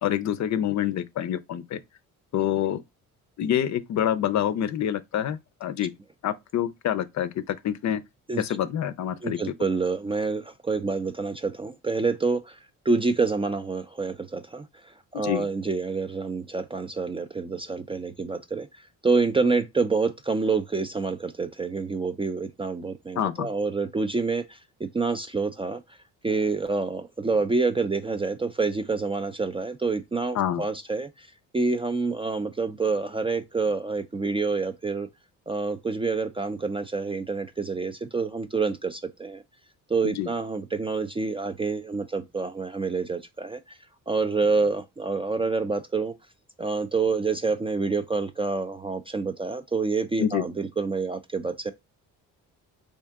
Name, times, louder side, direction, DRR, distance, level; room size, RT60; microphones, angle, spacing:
voice 1, 0.0-1.8 2.3-2.8 3.4-5.9 6.2-8.0 8.4-9.4 15.1-15.5 23.2-23.5 30.3-30.6 40.0-40.3 50.2-50.4, left 10 dB, 55° left, 0.5 m, -27 dB
voice 2, 9.2-12.6 12.9-14.7 15.1-18.7 19.0-24.6 24.9-25.8 26.2-31.3 31.5-35.1 35.5-39.4 39.9-43.6 44.1-46.1 46.6-51.7, right 4 dB, 15° right, 0.3 m, -27 dB
3.5 x 2.7 x 3.4 m
cardioid pair, 75°, 35 cm